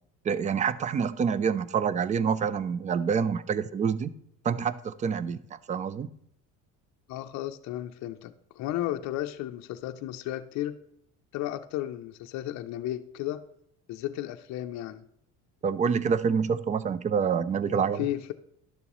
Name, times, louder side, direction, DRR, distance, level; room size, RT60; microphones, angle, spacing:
voice 1, 0.2-4.1 4.4-6.1 15.6-18.1, right 6 dB, 25° right, 16 dB, 0.3 m, -27 dB
voice 2, 7.1-10.8 11.3-13.4 13.9-15.0 17.6-18.3, left 13 dB, 55° left, 7 dB, 0.5 m, -34 dB
11.5 x 6.9 x 3.0 m, 0.72 s
cardioid pair, 120°, 33 cm